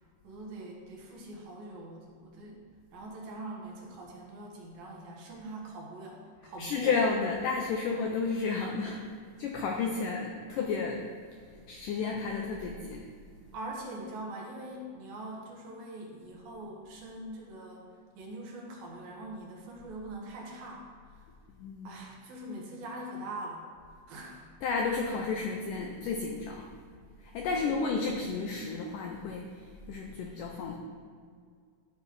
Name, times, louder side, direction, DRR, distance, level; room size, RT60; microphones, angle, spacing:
voice 1, 0.2-2.6 2.9-6.9 9.8-10.0 13.5-17.8 18.2-20.8 21.1-21.2 21.8-23.6 24.1-24.5 27.5-28.1, right 1 dB, 70° right, -2 dB, 3.1 m, -43 dB
voice 2, 6.6-9.1 9.4-11.0 11.7-13.1 21.6-21.9 24.6-26.7 27.2-30.8, left 4 dB, 90° left, 1 dB, 1.8 m, -32 dB
13.0 x 5.4 x 4.6 m, 2.1 s
omnidirectional pair, 4.6 m